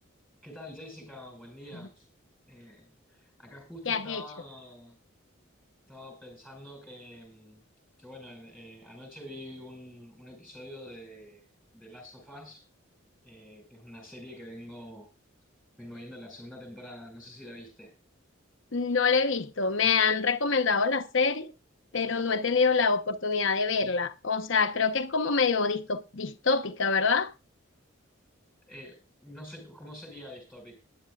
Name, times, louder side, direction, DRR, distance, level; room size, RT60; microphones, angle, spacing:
voice 1, 0.4-2.1 2.5-5.0 5.9-7.6 8.0-11.4 11.7-12.6 13.2-15.1 15.8-17.9 28.7-30.7, left 1 dB, 5° right, 4.9 m, -46 dB
voice 2, 3.9-4.2 18.7-21.5 21.9-27.3, left 5 dB, 65° left, 1.0 m, -26 dB
19.0 x 10.5 x 2.4 m
head